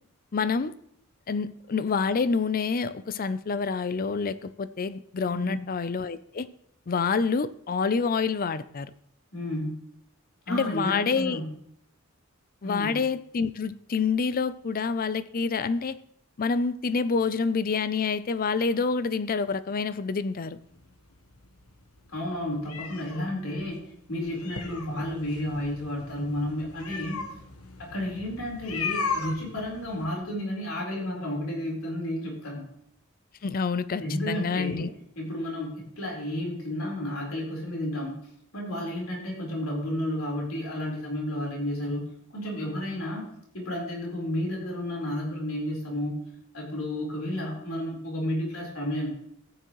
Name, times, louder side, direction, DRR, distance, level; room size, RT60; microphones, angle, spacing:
voice 1, 0.3-0.7 1.3-6.5 6.9-8.9 10.5-11.4 12.6-16.0 16.4-20.6 33.4-34.9, left 5 dB, 40° left, 15 dB, 0.5 m, -27 dB
voice 2, 9.3-9.7 10.5-11.4 12.6-13.0 22.1-23.8 24.1-27.2 27.8-32.7 34.0-34.9 35.2-43.3 43.5-49.1, left 1 dB, 70° left, -2 dB, 4.2 m, -32 dB
sound 1, 20.6-30.1, left 5 dB, 90° left, 1.2 m, -37 dB
14.5 x 9.3 x 3.1 m, 0.72 s
head